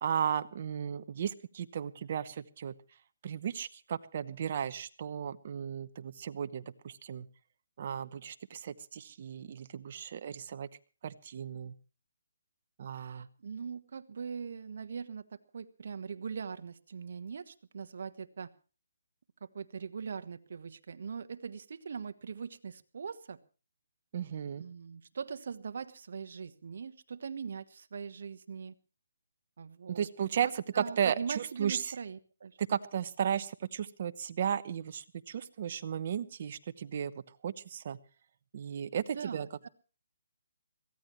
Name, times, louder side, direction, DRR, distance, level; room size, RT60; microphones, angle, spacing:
voice 1, 0.0-2.7 3.2-7.3 7.8-10.7 11.0-11.7 12.8-13.3 24.1-24.6 29.9-31.9 32.6-38.0 38.5-39.5, right 8 dB, 40° right, 12 dB, 1.0 m, -35 dB
voice 2, 12.9-18.5 19.4-23.4 24.6-28.7 29.6-30.1 30.4-32.6 39.1-39.7, right 6 dB, 55° right, 10 dB, 1.3 m, -41 dB
22.5 x 16.0 x 3.2 m, 0.36 s
hypercardioid pair, 170°, 0 cm